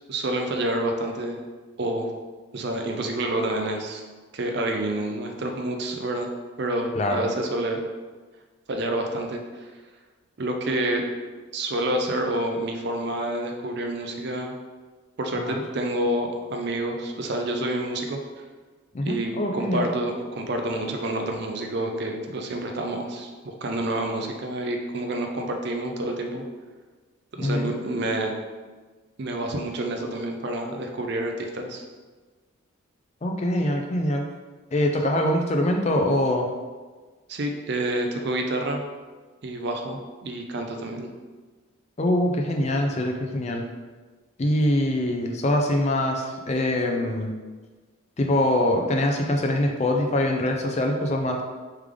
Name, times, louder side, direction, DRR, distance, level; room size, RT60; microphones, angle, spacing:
voice 1, 0.1-1.4 1.8-2.1 2.5-4.0 4.3-6.3 6.6-7.8 8.7-9.7 10.4-11.1 11.5-14.5 15.2-18.2 19.0-26.4 27.3-28.3 29.2-31.8 37.3-38.8 39.4-41.1, right 1 dB, 50° right, 3 dB, 0.5 m, -28 dB
voice 2, 6.9-7.3 15.3-15.6 18.9-19.9 27.4-27.7 33.2-34.3 34.7-36.5 42.0-43.7 44.4-47.3 48.2-51.4, left 1 dB, 30° left, 2 dB, 0.4 m, -24 dB
3.3 x 3.3 x 3.6 m, 1.4 s
head